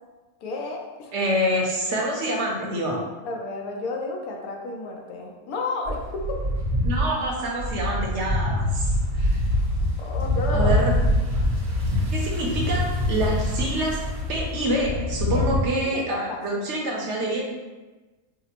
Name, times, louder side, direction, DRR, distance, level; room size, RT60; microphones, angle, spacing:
voice 1, 0.4-1.1 3.2-6.4 9.1-9.2 10.0-10.8 15.3-15.4 15.9-16.8, left 3 dB, 75° left, 0 dB, 1.1 m, -32 dB
voice 2, 1.1-3.0 6.8-8.9 9.2-9.4 10.5-10.9 12.1-14.0 14.3-17.4, right 1 dB, 60° right, -2 dB, 0.9 m, -26 dB
sound 1, 5.9-15.6, left 1 dB, 75° right, 1.4 m, -24 dB
4.9 x 2.0 x 2.9 m, 1.2 s
omnidirectional pair, 1.6 m